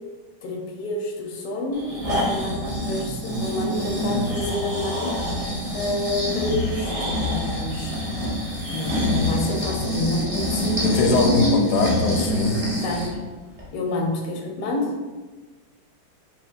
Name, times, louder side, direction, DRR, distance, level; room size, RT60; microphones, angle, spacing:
voice 1, 0.4-5.1 5.7-8.1 8.7-11.7 12.8-13.1 13.7-14.9, left 2 dB, 90° left, 1 dB, 1.6 m, -28 dB
Breathing, 1.7-13.1 13.6-13.7, left 1 dB, 45° right, 0.4 m, -26 dB
voice 2, 10.8-12.5, left 3 dB, 70° left, 3 dB, 1.0 m, -21 dB
5.6 x 2.7 x 2.5 m, 1.3 s
omnidirectional pair, 2.3 m